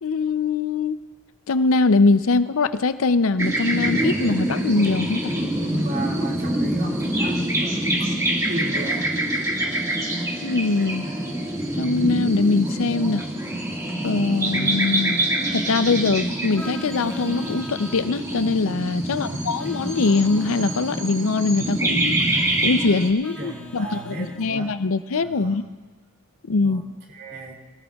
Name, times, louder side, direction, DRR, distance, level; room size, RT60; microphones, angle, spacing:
voice 1, 0.0-1.0 1.5-5.3 10.4-11.1 11.7-13.3 14.0-15.2 15.5-25.6 26.5-26.8, left 3 dB, 65° left, 12 dB, 0.6 m, -22 dB
sound 1, 3.4-23.1, right 1 dB, 15° right, 1.8 m, -25 dB
voice 2, 5.3-9.1 19.0-19.5 23.1-24.7 25.2-25.7 26.6-27.6, equal, 45° right, -2 dB, 2.3 m, -33 dB
sound 2, 8.4-9.0 9.6-11.6 12.6-13.2 13.7-15.7, equal, 40° left, 5.9 m, -45 dB
Vehicle horn car horn honking, 16.5-18.1 19.6-21.1 23.2-24.4, equal, 5° left, 2.2 m, -43 dB
24.5 x 18.0 x 2.4 m, 1.4 s
head